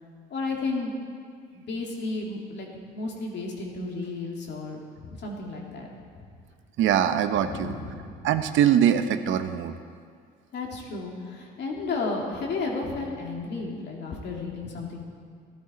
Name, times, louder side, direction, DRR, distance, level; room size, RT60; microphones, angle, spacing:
voice 1, 0.3-0.9 1.5-2.7 2.9-5.9 7.4-8.2 10.5-15.0, left 3 dB, 60° left, -1 dB, 2.6 m, -33 dB
voice 2, 6.8-7.7 8.2-9.7, right 9 dB, 70° right, 9 dB, 0.8 m, -22 dB
14.0 x 12.0 x 4.3 m, 2.1 s
cardioid pair, 90°, 21 cm